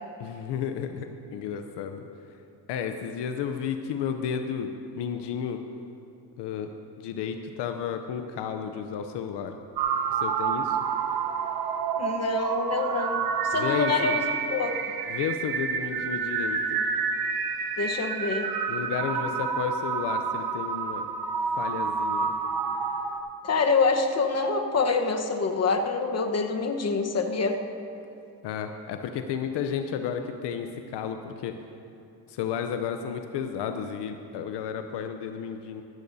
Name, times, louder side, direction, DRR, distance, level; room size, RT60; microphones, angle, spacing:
voice 1, 0.2-2.0 2.7-4.7 4.9-5.6 6.4-6.7 7.0-9.5 10.1-10.8 13.5-14.1 15.1-16.8 18.7-21.1 21.6-22.3 28.4-31.5 32.3-35.8, left 7 dB, 80° left, 6 dB, 0.7 m, -32 dB
sound 1, 9.8-23.2, right 6 dB, 60° right, 1.0 m, -29 dB
voice 2, 12.0-14.7 17.8-18.5 23.4-27.6, left 4 dB, 40° left, 4 dB, 1.1 m, -26 dB
15.5 x 14.0 x 2.7 m, 2.7 s
cardioid pair, 75°, 41 cm